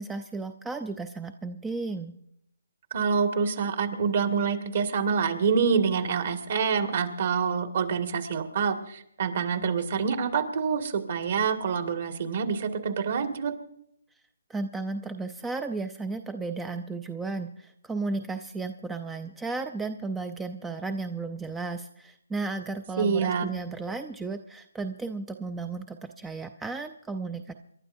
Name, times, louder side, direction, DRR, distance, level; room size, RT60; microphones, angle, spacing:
voice 1, 0.0-2.1 14.5-27.5, right 3 dB, 5° right, 8 dB, 0.5 m, -34 dB
voice 2, 2.9-13.5 23.0-23.5, right 6 dB, 50° right, 6 dB, 1.9 m, -26 dB
28.0 x 12.0 x 2.6 m, 0.73 s
hypercardioid pair, 155°, 0 cm